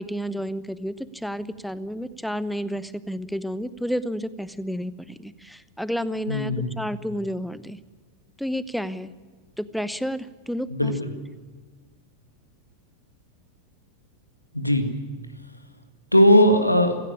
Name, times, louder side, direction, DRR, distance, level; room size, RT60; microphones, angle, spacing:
voice 1, 0.0-7.8 8.4-9.1 9.6-10.9, equal, ahead, 16 dB, 0.8 m, -31 dB
voice 2, 6.3-6.8 10.7-11.1 14.5-14.9 16.1-17.0, equal, 85° left, 8 dB, 1.9 m, -19 dB
17.0 x 16.5 x 9.6 m, 1.4 s
figure-of-eight pair, 90°, 0 cm